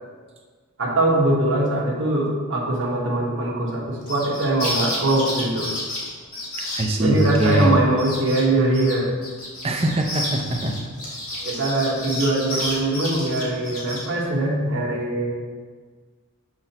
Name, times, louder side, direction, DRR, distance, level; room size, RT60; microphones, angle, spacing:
voice 1, 0.8-5.7 7.0-9.1 11.4-15.4, right 1 dB, 55° right, -5 dB, 1.3 m, -22 dB
sound 1, 4.0-7.6 8.0-8.4 8.7-14.1, left 1 dB, 70° left, 2.0 m, -31 dB
voice 2, 6.7-7.7 9.6-10.7, right 1 dB, 25° right, 2 dB, 0.6 m, -21 dB
6.7 x 6.1 x 2.9 m, 1.5 s
head